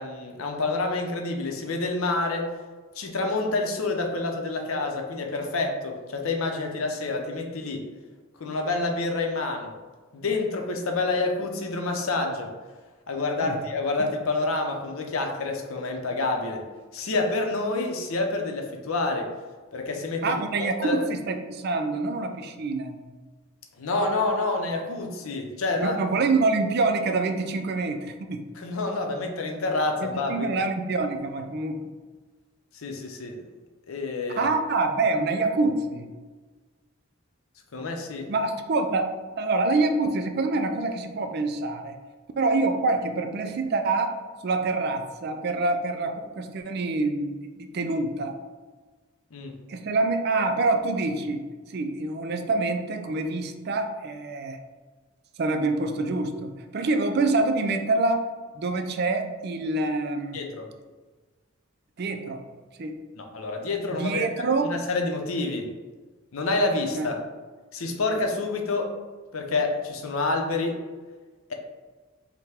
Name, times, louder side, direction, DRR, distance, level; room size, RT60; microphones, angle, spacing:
voice 1, 0.0-2.5 2.9-7.9 8.4-9.7 10.1-12.5 13.1-16.6 16.9-19.3 19.7-20.4 20.8-21.1 23.8-26.0 28.6-30.6 32.7-33.4 33.9-34.5 37.7-38.3 49.3-49.5 60.3-60.7 63.2-64.3 64.6-65.7 66.3-67.2 67.7-68.9 69.3-70.8, left 3 dB, 80° left, 3 dB, 0.6 m, -28 dB
voice 2, 20.2-23.0 25.8-28.4 30.0-31.8 34.4-36.1 38.3-42.0 42.4-44.2 44.4-48.4 49.7-51.5 51.7-54.6 55.4-60.4 62.0-62.4 62.8-63.0 63.9-64.7 67.0-67.1, right 3 dB, 50° right, 6 dB, 0.4 m, -26 dB
5.5 x 2.2 x 3.4 m, 1.4 s
head